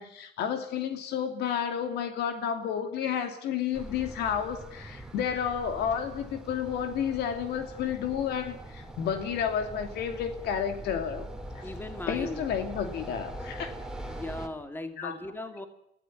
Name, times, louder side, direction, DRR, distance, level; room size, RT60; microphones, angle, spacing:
voice 1, 0.0-11.3 11.5-11.6 12.1-13.7 15.0-15.2, left 8 dB, 80° left, 7 dB, 2.7 m, -31 dB
sound 1, 3.7-14.5, right 1 dB, 5° right, 2.8 m, -42 dB
voice 2, 11.6-12.5 14.1-15.7, left 1 dB, 10° left, 7 dB, 2.6 m, -38 dB
23.5 x 15.0 x 9.9 m, 0.75 s
cardioid pair, 110°, 17 cm